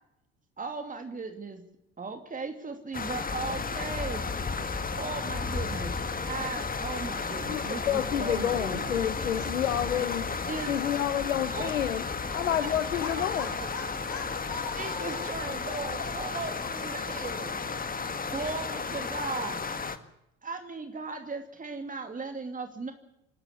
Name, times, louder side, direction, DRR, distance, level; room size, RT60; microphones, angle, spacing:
voice 1, 0.6-1.6 2.0-4.2 5.0-5.9 6.3-8.9 10.3-10.7 11.5-11.7 12.6-12.7 13.1-13.3 13.6-13.7 14.8-17.6 18.3-19.6 20.4-22.9, right 4 dB, 20° right, 6 dB, 2.6 m, -37 dB
sound 1, 2.9-20.0, left 4 dB, 20° left, 1.9 m, -33 dB
voice 2, 7.4-10.3 10.7-12.0 12.3-13.5, left 10 dB, 80° left, 13 dB, 1.0 m, -29 dB
voice 3, 13.0-16.1 16.6-16.7, left 5 dB, 60° left, 5 dB, 6.1 m, -41 dB
27.0 x 11.5 x 9.6 m, 0.85 s
figure-of-eight pair, 55°, 38 cm